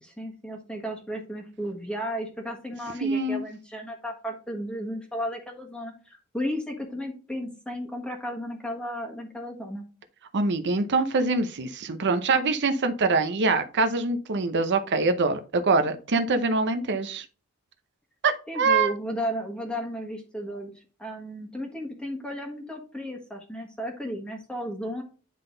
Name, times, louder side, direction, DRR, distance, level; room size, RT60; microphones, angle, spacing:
voice 1, 0.0-9.8 18.5-20.7 21.0-25.0, equal, 5° left, 1 dB, 1.4 m, -34 dB
voice 2, 3.0-3.4 10.3-17.2 18.2-18.9, right 3 dB, 50° right, 9 dB, 0.7 m, -24 dB
9.9 x 3.9 x 3.8 m, 0.36 s
head